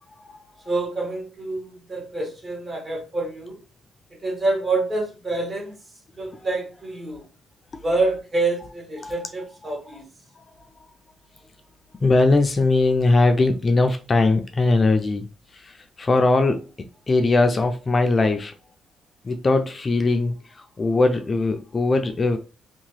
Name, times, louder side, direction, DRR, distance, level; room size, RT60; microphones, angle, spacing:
voice 1, 0.6-3.6 4.1-5.8 6.1-7.2 7.8-10.0, right 2 dB, 35° right, 1.3 m, -27 dB
voice 2, 10.4-10.7 12.0-15.3 15.5-16.7 17.1-18.5 19.2-22.4, left 3 dB, 30° left, 0.4 m, -20 dB
2.7 x 2.2 x 3.2 m
cardioid pair, 90°, 0 cm